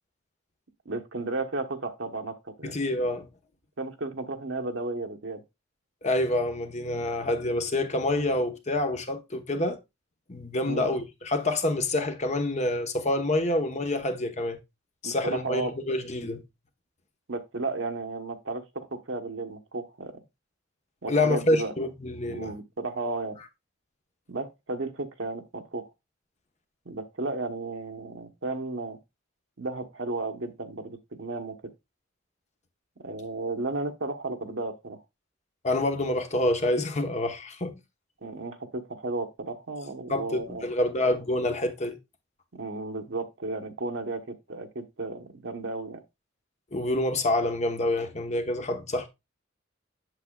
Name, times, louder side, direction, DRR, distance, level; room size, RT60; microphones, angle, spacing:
voice 1, 0.8-2.9 3.8-5.4 10.7-10.9 15.0-15.7 17.3-20.1 21.0-21.7 22.3-23.4 24.3-25.9 26.8-29.0 29.6-31.7 33.0-35.0 38.2-40.7 42.5-46.0, right 3 dB, 70° right, 1.1 m, -34 dB
voice 2, 2.6-3.3 6.0-9.8 10.3-14.6 15.0-16.4 21.1-22.5 35.6-37.7 40.1-42.0 46.7-49.1, left 1 dB, 35° left, 1.1 m, -27 dB
8.2 x 7.3 x 2.3 m
head